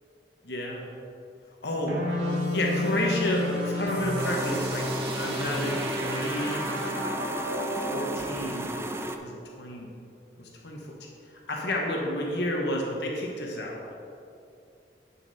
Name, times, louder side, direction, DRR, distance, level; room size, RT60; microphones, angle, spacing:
voice 1, 0.4-0.8 1.6-2.0 2.5-4.9 5.2-6.7 7.9-8.9 9.2-9.9 10.4-10.9 11.5-13.8, left 1 dB, 70° left, -1 dB, 1.1 m, -31 dB
sound 1, 1.9-8.1, left 1 dB, 75° right, 1.3 m, -31 dB
sound 2, 4.2-9.2, right 1 dB, 15° right, 0.4 m, -34 dB
8.5 x 6.9 x 4.1 m, 2.6 s
head